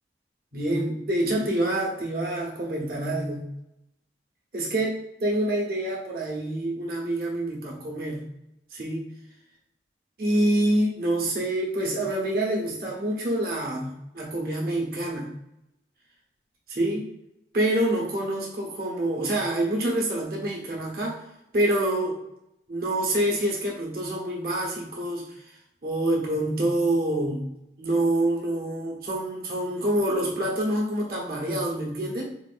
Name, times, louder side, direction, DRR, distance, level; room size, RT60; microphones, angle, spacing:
voice 1, 0.5-3.5 4.5-4.9 5.2-8.2 8.7-9.0 10.2-15.3 16.7-17.1 17.5-21.2 21.5-22.2 22.7-25.2 25.8-27.5 27.8-32.2, right 1 dB, 55° right, -2 dB, 1.0 m, -26 dB
4.1 x 2.6 x 2.5 m, 0.83 s
head